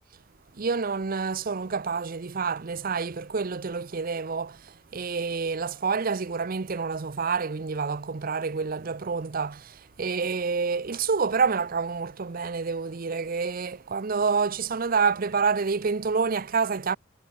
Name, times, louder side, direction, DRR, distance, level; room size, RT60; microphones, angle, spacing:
voice 1, 0.6-17.0, right 5 dB, 45° right, 0.6 m, -28 dB
head